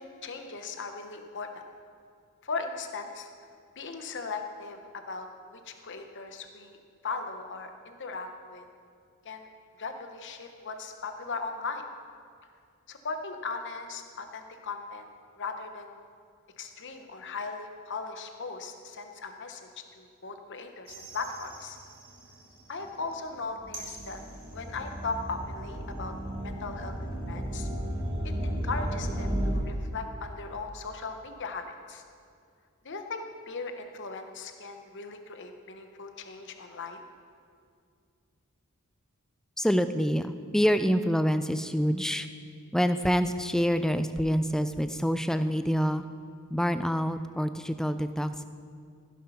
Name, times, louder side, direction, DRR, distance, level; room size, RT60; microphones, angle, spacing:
voice 1, 0.0-1.6 2.4-3.3 3.8-5.3 5.5-6.8 7.0-8.7 9.2-9.5 9.8-11.8 12.9-15.1 15.4-16.0 16.6-19.7 19.9-21.8 22.7-24.2 24.5-26.1 26.4-26.9 27.3-27.7 28.4-32.0 32.8-37.0, left 4 dB, 55° left, 6 dB, 1.0 m, -38 dB
sound 1, 20.9-22.4 22.8-29.5, equal, 40° right, 3.7 m, -34 dB
voice 2, 39.6-42.3 42.7-46.0 46.5-48.4, equal, ahead, 10 dB, 0.3 m, -26 dB
15.5 x 7.4 x 5.7 m, 2.3 s
head